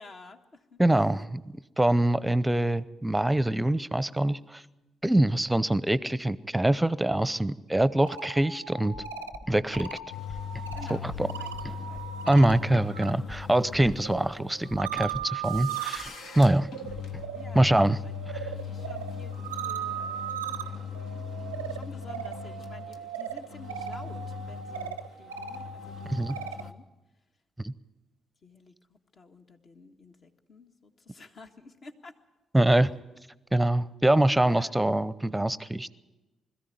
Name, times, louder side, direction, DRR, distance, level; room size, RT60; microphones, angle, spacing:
voice 1, 0.0-0.8 10.7-12.1 17.3-17.8 18.0-18.1 18.6-21.0 21.7-26.8 28.4-32.1 34.4-34.7, left 3 dB, 50° left, 4 dB, 1.6 m, -50 dB
voice 2, 0.8-1.4 1.8-4.6 5.0-8.9 9.5-10.0 10.9-11.3 12.3-16.1 16.4-16.7 17.5-18.0 26.1-26.4 27.6-27.7 32.5-32.9 33.5-35.9, right 1 dB, 10° right, 18 dB, 0.8 m, -24 dB
sound 1, 7.9-13.1 13.4-26.7, right 9 dB, 90° right, 0.6 m, -39 dB
sound 2, 8.9-12.9 13.3-17.3, left 1 dB, 15° left, 1.6 m, -45 dB
sound 3, 10.1-26.7, left 7 dB, 65° left, 1.2 m, -40 dB
21.0 x 14.5 x 9.3 m, 1.1 s
hypercardioid pair, 45°, 0 cm